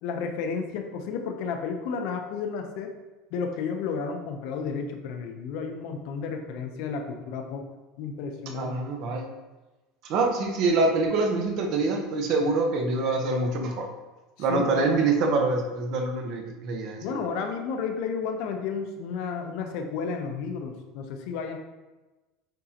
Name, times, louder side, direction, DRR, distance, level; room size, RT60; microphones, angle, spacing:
voice 1, 0.0-2.9 3.3-7.7 8.0-8.7 14.5-15.0 17.0-21.6, left 5 dB, 65° left, 5 dB, 0.8 m, -32 dB
voice 2, 8.5-9.3 10.0-13.9 14.4-17.2, right 3 dB, 55° right, 2 dB, 1.1 m, -25 dB
8.9 x 3.8 x 2.9 m, 1.1 s
supercardioid pair, 145°, 0 cm